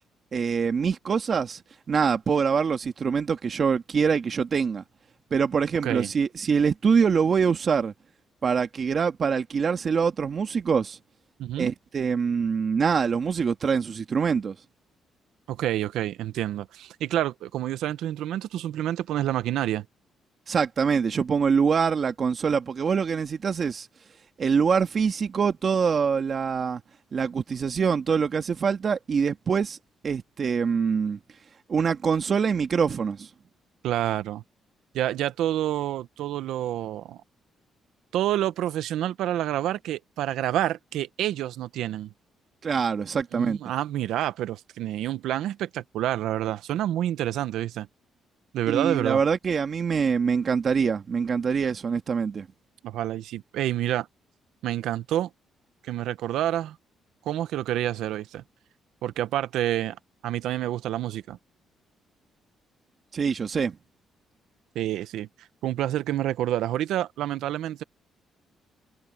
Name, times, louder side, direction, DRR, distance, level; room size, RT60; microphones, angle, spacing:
voice 1, 0.3-1.6 1.9-4.8 5.3-7.9 8.4-11.0 11.6-14.5 20.5-23.9 24.4-26.8 27.1-29.8 30.0-31.2 31.7-33.3 42.6-43.6 48.7-52.5 63.1-63.8, right 6 dB, 45° right, 1.7 m, -24 dB
voice 2, 11.4-11.7 15.5-19.8 33.8-34.4 34.9-37.2 38.1-42.1 43.3-47.9 48.5-49.2 52.8-54.1 54.6-55.3 55.9-56.8 57.2-58.4 59.0-60.0 60.2-61.4 64.7-65.3 65.6-67.8, right 12 dB, 85° right, 0.9 m, -28 dB
cardioid pair, 90°, 0 cm